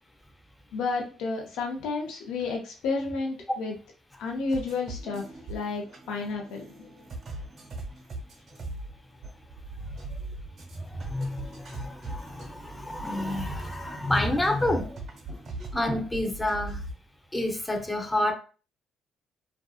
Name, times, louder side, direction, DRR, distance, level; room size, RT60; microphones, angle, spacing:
voice 1, 0.7-3.7 4.2-6.9, left 4 dB, 85° left, 0.5 m, -31 dB
sound 1, 4.5-16.9, right 2 dB, 60° right, 0.9 m, -41 dB
voice 2, 10.7-15.0 15.3-15.4 15.7-16.8 17.3-18.3, left 1 dB, 10° left, 0.6 m, -29 dB
2.5 x 2.4 x 2.3 m
cardioid pair, 80°, 0 cm